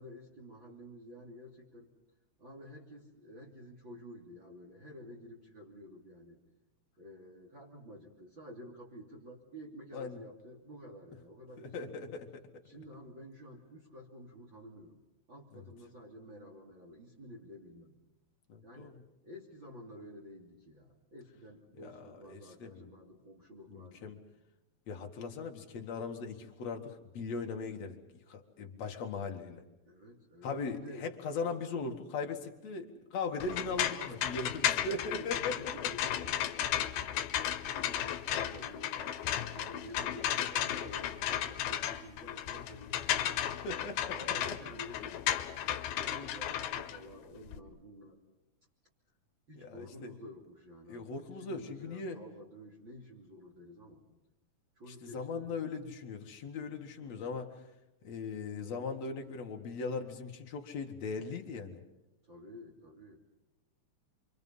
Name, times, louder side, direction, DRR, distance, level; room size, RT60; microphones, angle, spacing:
voice 1, 0.0-1.9 2.4-6.4 7.0-12.1 12.6-15.0 15.3-17.9 18.6-18.9 19.2-24.2 29.8-31.1 33.4-37.5 37.8-43.6 44.1-45.3 45.9-48.2 49.5-54.0 54.8-55.7 62.2-63.2, equal, 35° right, -2 dB, 3.4 m, -51 dB
voice 2, 11.6-12.6 15.5-15.7 18.5-19.0 21.8-22.9 23.7-24.2 24.9-29.6 30.4-33.9 34.2-35.9 37.7-38.0 43.6-44.6 45.7-46.3 49.6-50.1 50.9-52.2 55.0-57.5 58.0-61.8, left 4 dB, 50° left, 3 dB, 2.9 m, -39 dB
sound 1, 33.4-47.6, left 11 dB, 90° left, 3.0 m, -34 dB
27.5 x 25.0 x 5.6 m, 0.98 s
omnidirectional pair, 4.3 m